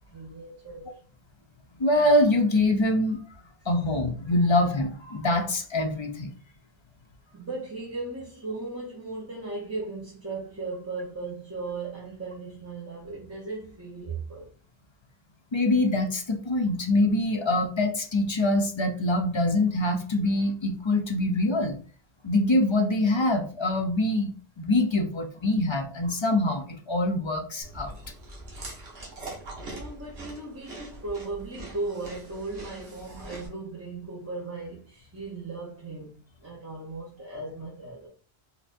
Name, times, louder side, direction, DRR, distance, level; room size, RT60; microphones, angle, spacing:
voice 1, 0.1-0.9 7.3-14.5 29.0-29.1 29.7-38.1, right 3 dB, 15° right, 0.7 m, -37 dB
voice 2, 1.8-3.2 3.7-6.3 15.5-21.8 22.2-24.3 24.6-27.9, left 1 dB, 35° left, 0.4 m, -24 dB
Chewing mastication, 27.6-33.5, right 2 dB, 75° right, 1.3 m, -42 dB
4.0 x 2.6 x 2.5 m
omnidirectional pair, 1.1 m